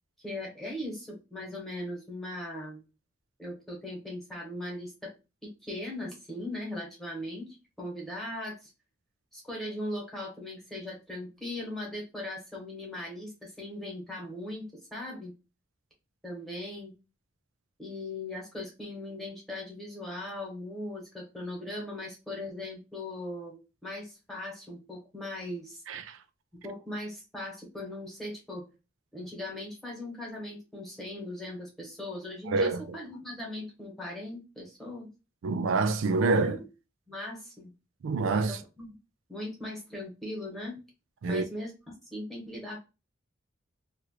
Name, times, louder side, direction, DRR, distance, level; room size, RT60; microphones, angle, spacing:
voice 1, 0.2-2.8 3.4-5.1 5.4-8.7 9.3-15.3 16.2-16.9 17.8-25.8 26.6-28.7 29.1-35.1 36.4-36.6 37.1-37.7 38.5-38.8 39.3-40.8 41.3-41.7 42.1-42.8, left 1 dB, ahead, 1.2 m, -39 dB
voice 2, 25.9-26.2 32.5-32.8 35.4-36.6 38.0-38.6 41.2-41.4, right 3 dB, 80° right, 0.4 m, -26 dB
3.0 x 2.5 x 3.0 m
head